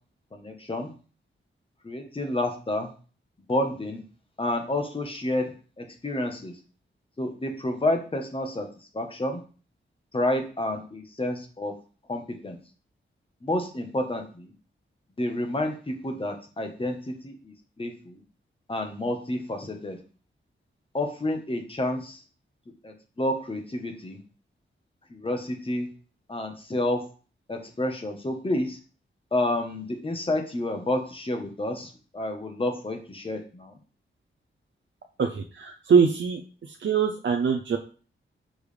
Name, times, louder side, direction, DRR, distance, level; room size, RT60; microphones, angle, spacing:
voice 1, 0.3-0.9 1.8-2.9 3.5-4.0 4.4-5.5 5.8-6.5 7.2-8.7 8.9-9.4 10.1-11.7 12.1-12.6 13.4-14.5 15.2-18.2 18.7-20.0 20.9-22.2 22.8-24.2 25.1-25.9 26.3-27.0 27.5-28.8 29.3-33.7, left 1 dB, 25° left, 4 dB, 1.2 m, -29 dB
voice 2, 35.2-37.8, right 6 dB, 65° right, 3 dB, 0.6 m, -23 dB
6.3 x 5.2 x 3.4 m, 0.38 s
wide cardioid pair, 135°, 21 cm